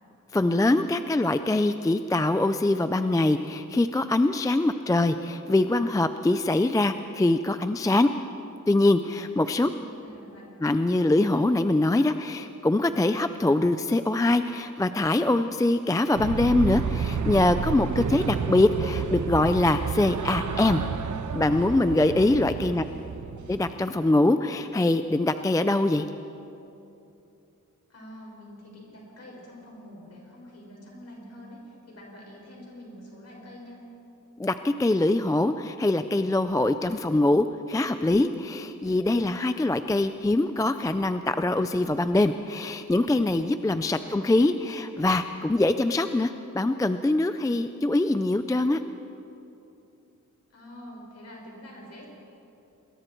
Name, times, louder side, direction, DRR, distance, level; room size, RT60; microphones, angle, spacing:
voice 1, 0.3-8.1 8.7-9.7 10.6-20.8 21.3-22.8 23.5-26.1 34.4-48.8, left 2 dB, 10° left, 10 dB, 0.4 m, -23 dB
voice 2, 9.7-10.5 22.7-23.2 27.9-33.8 44.0-44.3 50.5-52.1, equal, 50° left, -2 dB, 5.8 m, -46 dB
sound 1, 16.2-23.8, right 6 dB, 65° right, 1.0 m, -31 dB
27.5 x 21.5 x 4.5 m, 2.9 s
wide cardioid pair, 175°, 32 cm